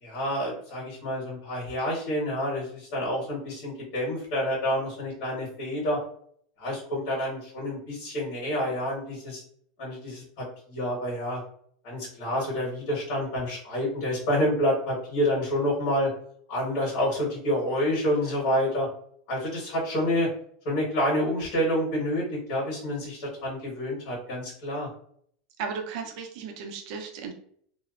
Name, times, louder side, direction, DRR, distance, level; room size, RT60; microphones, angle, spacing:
voice 1, 0.0-6.0 6.6-9.4 9.8-11.4 11.8-16.1 16.5-18.9 19.3-20.3 20.6-24.9, equal, 65° left, -5 dB, 1.3 m, -28 dB
voice 2, 25.6-27.3, right 5 dB, 65° right, 4 dB, 0.5 m, -35 dB
2.6 x 2.1 x 2.4 m, 0.63 s
supercardioid pair, 145°, 4 cm